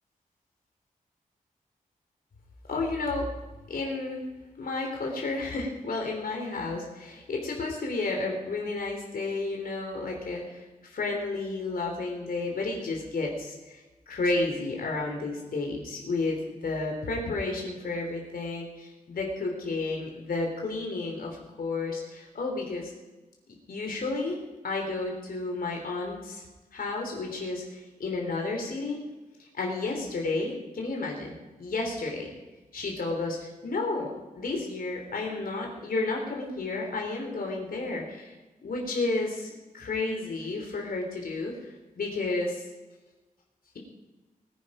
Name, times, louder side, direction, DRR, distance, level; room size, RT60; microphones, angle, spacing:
voice 1, 2.7-3.2 3.7-4.2 4.6-22.9 23.7-24.4 24.6-26.4 26.7-29.0 29.4-32.3 32.7-38.3 38.6-41.5 42.0-42.6, left 3 dB, 85° left, 0 dB, 3.5 m, -32 dB
20.0 x 9.9 x 5.0 m, 1.2 s
wide cardioid pair, 175°, 15 cm